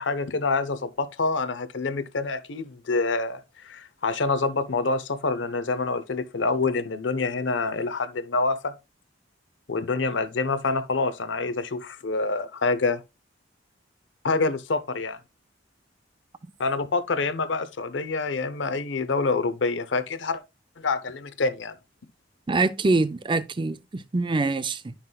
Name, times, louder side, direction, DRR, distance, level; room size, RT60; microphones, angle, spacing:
voice 1, 0.0-8.8 9.7-13.0 14.2-15.2 16.6-20.4 20.8-21.7, left 3 dB, 75° left, 0.7 m, -26 dB
voice 2, 22.5-24.9, right 3 dB, 25° right, 0.5 m, -24 dB
11.0 x 5.7 x 2.3 m
head